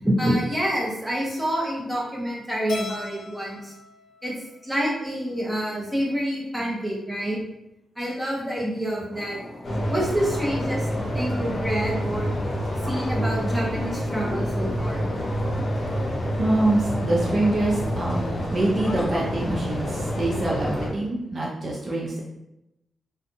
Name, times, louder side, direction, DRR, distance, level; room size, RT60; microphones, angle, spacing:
voice 1, 0.0-3.7 4.2-4.3 4.6-7.4 8.0-9.4 9.9-12.3 12.8-15.2, equal, 5° right, -4 dB, 0.9 m, -27 dB
Keyboard (musical), 2.7-5.0, left 3 dB, 85° left, 0.5 m, -38 dB
sound 1, 9.1-20.5, left 1 dB, 20° left, 0.4 m, -42 dB
sound 2, 9.6-20.9, equal, 45° left, 0.9 m, -28 dB
voice 2, 16.3-22.2, right 2 dB, 45° right, -4 dB, 0.5 m, -25 dB
2.5 x 2.3 x 2.6 m, 0.88 s
cardioid pair, 75°, 0 cm